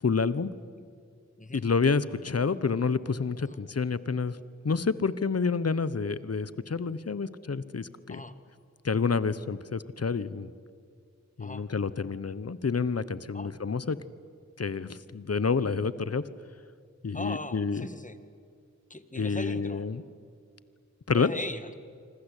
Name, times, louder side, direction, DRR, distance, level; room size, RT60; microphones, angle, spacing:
voice 1, 0.0-0.5 1.5-4.4 4.6-8.2 8.8-10.5 11.4-14.0 14.6-16.2 17.0-17.9 19.2-20.0 21.1-21.3, left 5 dB, 55° left, 16 dB, 1.1 m, -28 dB
voice 2, 17.1-18.2 18.9-19.9 21.1-21.8, left 2 dB, 25° left, 11 dB, 2.0 m, -39 dB
26.0 x 25.5 x 8.4 m, 2.2 s
cardioid pair, 45°, 30 cm